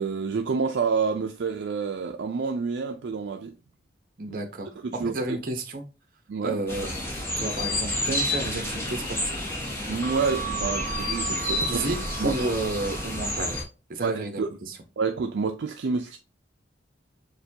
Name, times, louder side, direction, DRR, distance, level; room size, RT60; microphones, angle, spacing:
voice 1, 0.0-3.5 4.8-5.1 6.3-6.6 9.9-11.8 12.2-12.3 14.0-14.5 15.0-16.2, right 5 dB, 60° right, 0.4 m, -28 dB
voice 2, 4.2-5.8 6.4-6.9 7.4-9.4 11.7-12.0 12.2-13.6 13.9-14.8, right 2 dB, 45° right, 0.8 m, -31 dB
sound 1, 6.7-13.6, left 1 dB, 10° left, 0.9 m, -29 dB
6.7 x 2.2 x 2.7 m
head